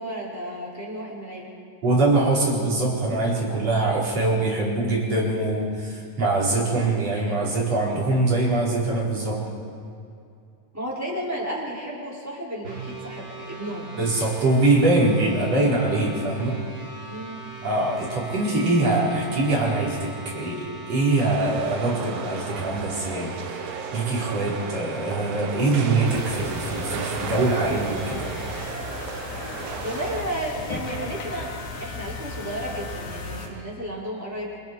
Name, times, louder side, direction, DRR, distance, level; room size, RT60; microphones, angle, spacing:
voice 1, 0.0-1.5 3.5-3.6 9.5-9.7 10.7-13.9 17.1-17.4 29.8-31.5 31.8-34.6, right 1 dB, 5° right, -6 dB, 5.3 m, -33 dB
voice 2, 1.8-9.4 14.0-16.6 17.6-23.6 23.9-28.3, right 2 dB, 45° right, -4 dB, 5.3 m, -23 dB
sound 1, 12.6-28.7, right 3 dB, 25° right, 5.1 m, -40 dB
sound 2, 21.2-30.2, right 6 dB, 65° right, 1.6 m, -35 dB
sound 3, 26.1-33.5, left 3 dB, 90° left, 4.4 m, -35 dB
28.0 x 27.0 x 4.6 m, 2.5 s
omnidirectional pair, 4.2 m